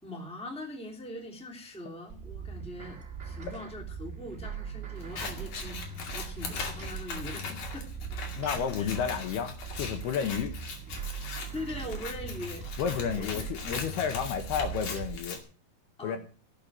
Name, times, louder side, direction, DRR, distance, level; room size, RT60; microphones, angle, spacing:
voice 1, 0.0-7.9 8.8-8.9 11.5-12.6 13.1-13.5 16.0-16.2, left 1 dB, ahead, 2 dB, 2.2 m, -42 dB
sound 1, 2.1-15.2, right 6 dB, 40° right, 1.1 m, -40 dB
Scissors, 5.0-15.4, left 5 dB, 55° left, 3.7 m, -40 dB
voice 2, 8.4-10.5 12.8-15.4 16.0-16.2, left 7 dB, 75° left, 7 dB, 3.3 m, -31 dB
17.0 x 7.0 x 7.6 m, 0.38 s
omnidirectional pair, 5.0 m